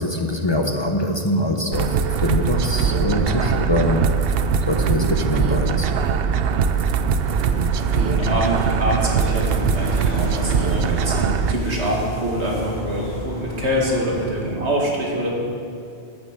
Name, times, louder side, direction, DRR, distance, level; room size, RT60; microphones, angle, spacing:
voice 1, 0.0-4.1 4.7-5.9, left 1 dB, 25° left, 3 dB, 0.8 m, -23 dB
sound 1, 1.7-11.5, right 6 dB, 65° right, 0.8 m, -21 dB
sound 2, 7.2-14.3, left 1 dB, 65° left, 2.9 m, -33 dB
voice 2, 7.9-15.3, right 1 dB, 85° right, -2 dB, 2.5 m, -25 dB
Bowed string instrument, 8.5-13.1, left 1 dB, 35° right, 4.0 m, -37 dB
11.0 x 8.9 x 8.4 m, 2.5 s
omnidirectional pair, 1.1 m